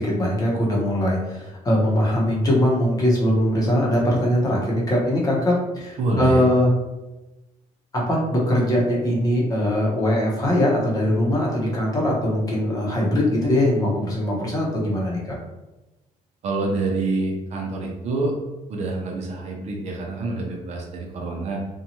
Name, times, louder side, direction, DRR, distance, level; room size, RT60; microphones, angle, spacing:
voice 1, 0.0-6.7 7.9-15.4, left 1 dB, 25° left, -4 dB, 0.8 m, -21 dB
voice 2, 6.0-6.4 16.4-18.3 18.7-21.6, right 2 dB, 55° right, 0 dB, 0.6 m, -26 dB
2.6 x 2.3 x 2.8 m, 1.0 s
cardioid pair, 145°, 13 cm